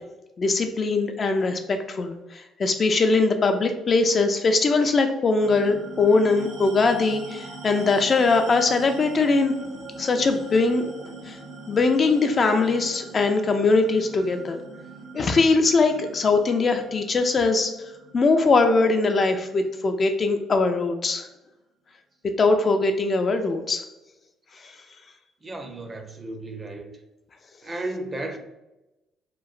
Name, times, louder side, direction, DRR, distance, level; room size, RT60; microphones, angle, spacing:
voice 1, 0.4-9.5 10.0-10.8 11.3-11.4 11.7-14.6 15.1-17.7 18.1-21.3 22.4-23.8, left 3 dB, 45° left, 6 dB, 0.3 m, -21 dB
sound 1, 5.4-20.2, right 2 dB, 80° right, 0.9 m, -42 dB
voice 2, 25.4-26.9 27.6-28.4, right 2 dB, 30° right, 5 dB, 0.5 m, -34 dB
2.9 x 2.0 x 2.4 m, 0.97 s
supercardioid pair, 70°, 0 cm